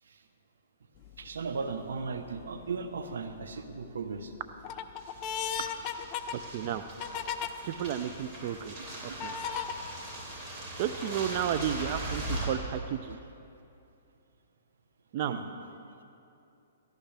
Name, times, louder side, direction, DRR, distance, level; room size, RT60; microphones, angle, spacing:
sound 1, 1.0-1.4 2.0-2.6 3.1-3.8 4.2-7.5 8.1-8.2 9.2-9.7, left 8 dB, 30° left, 0.6 m, -36 dB
voice 1, 1.2-4.3 5.6-5.7 8.4-8.5 9.1-9.2 9.7-9.9 13.1-13.2 15.2-15.4, right 4 dB, 85° right, 8 dB, 1.0 m, -37 dB
sound 2, 5.0-12.5, right 1 dB, 30° right, 3.7 m, -40 dB
voice 2, 7.6-8.7 9.2-9.3 10.8-13.2 15.1-15.3, right 9 dB, 45° right, 9 dB, 0.5 m, -32 dB
17.5 x 14.5 x 3.4 m, 2.7 s
hypercardioid pair, 145°, 0 cm